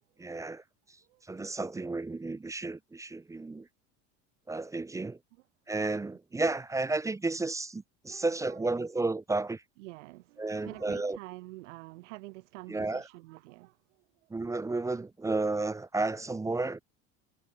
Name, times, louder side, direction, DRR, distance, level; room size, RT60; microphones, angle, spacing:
voice 1, 0.2-1.0 1.2-3.7 4.5-5.2 5.7-9.6 10.4-11.2 12.7-13.1 14.3-16.8, right 3 dB, 10° right, 0.4 m, -32 dB
voice 2, 8.1-8.7 9.8-14.3, right 22 dB, 80° right, 4.7 m, -48 dB
supercardioid pair, 85°, 36 cm